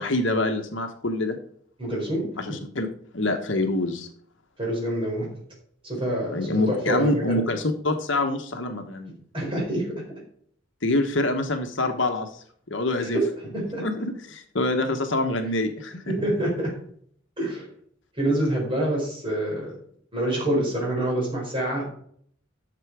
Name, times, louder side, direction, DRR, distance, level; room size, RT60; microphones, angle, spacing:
voice 1, 0.0-1.4 2.4-2.9 3.1-4.1 6.2-9.2 10.8-13.2 13.8-16.1, left 2 dB, 65° left, 5 dB, 1.1 m, -26 dB
voice 2, 1.8-2.5 4.6-5.3 5.8-7.4 9.3-9.9 13.0-13.2 13.5-13.8 16.0-16.7 17.4-17.7 18.2-19.8 20.1-21.8, right 1 dB, 25° right, -2 dB, 4.8 m, -26 dB
12.0 x 6.9 x 4.8 m, 0.62 s
head